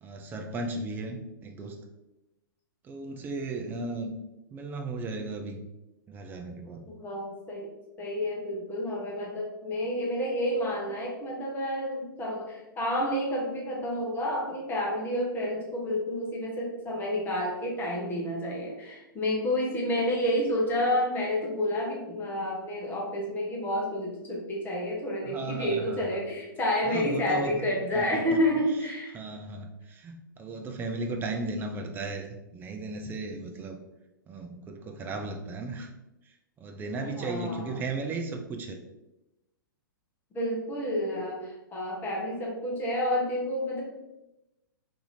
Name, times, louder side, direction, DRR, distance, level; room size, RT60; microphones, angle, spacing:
voice 1, 0.0-1.8 2.8-4.1 4.5-5.6 6.1-6.9 25.2-26.2 26.8-28.3 29.1-32.3 32.5-33.8 34.3-35.9 36.6-38.8, right 3 dB, 15° right, 4 dB, 0.4 m, -35 dB
voice 2, 6.9-7.7 8.0-29.2 37.0-37.8 40.3-43.8, left 1 dB, 15° left, -2 dB, 0.9 m, -30 dB
2.7 x 2.7 x 4.0 m, 0.97 s
figure-of-eight pair, 110°, 12 cm